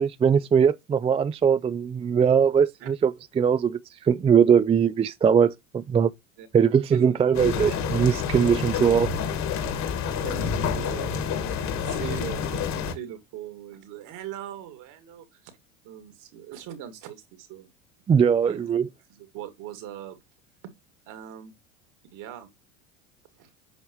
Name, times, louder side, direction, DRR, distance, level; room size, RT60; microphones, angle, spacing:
voice 1, 0.0-3.8 4.0-6.1 6.5-9.1 18.1-18.9, right 7 dB, 15° right, 0.4 m, -21 dB
voice 2, 6.9-7.5 10.1-15.5 15.8-17.7 18.4-18.7 19.1-20.2 21.1-21.5 22.1-22.5 23.4-23.5, right 10 dB, 55° right, 2.3 m, -41 dB
sound 1, 7.3-12.9, left 7 dB, 50° left, 1.9 m, -28 dB
7.9 x 5.5 x 3.0 m
hypercardioid pair, 85°, 36 cm